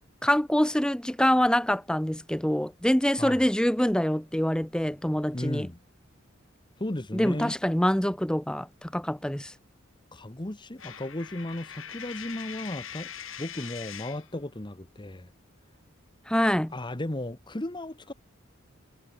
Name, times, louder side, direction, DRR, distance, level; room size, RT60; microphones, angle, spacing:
voice 1, 0.2-5.7 7.1-9.5 16.3-16.7, equal, 5° left, 0.8 m, -25 dB
voice 2, 5.3-5.8 6.8-7.5 10.1-13.1 13.4-15.3 16.7-18.1, left 1 dB, 25° left, 1.1 m, -35 dB
Coin (dropping), 10.8-14.3, left 9 dB, 75° left, 4.4 m, -42 dB
head